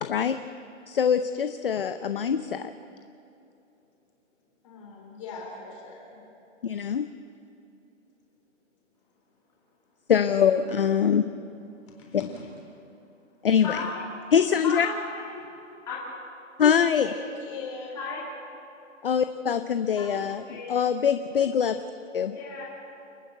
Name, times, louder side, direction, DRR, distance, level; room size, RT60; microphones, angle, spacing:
voice 1, 0.0-0.4 0.9-2.7 6.6-7.1 10.1-11.3 13.4-13.8 14.3-14.9 16.6-17.1 19.0-21.7 22.1-22.3, left 7 dB, 45° left, 10 dB, 0.6 m, -23 dB
voice 2, 4.6-6.2 12.0-12.5 17.0-17.9, left 4 dB, 25° left, -1 dB, 3.9 m, -40 dB
voice 3, 13.6-14.0 14.6-15.4 15.9-16.0 17.9-18.2 20.0-20.7 22.3-22.6, left 4 dB, 10° left, -6 dB, 2.3 m, -35 dB
28.5 x 9.9 x 9.1 m, 2.8 s
hypercardioid pair, 180°, 38 cm